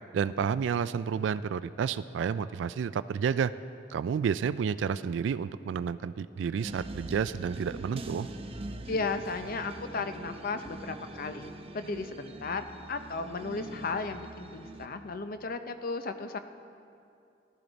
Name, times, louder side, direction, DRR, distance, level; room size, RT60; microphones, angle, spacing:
voice 1, 0.1-3.5 3.9-8.3, right 7 dB, 85° right, 15 dB, 0.3 m, -30 dB
sound 1, 6.6-14.9, right 2 dB, 35° right, 0.7 m, -43 dB
voice 2, 8.9-11.5 11.7-16.4, left 3 dB, 50° left, 9 dB, 0.6 m, -35 dB
15.0 x 12.0 x 4.0 m, 2.5 s
head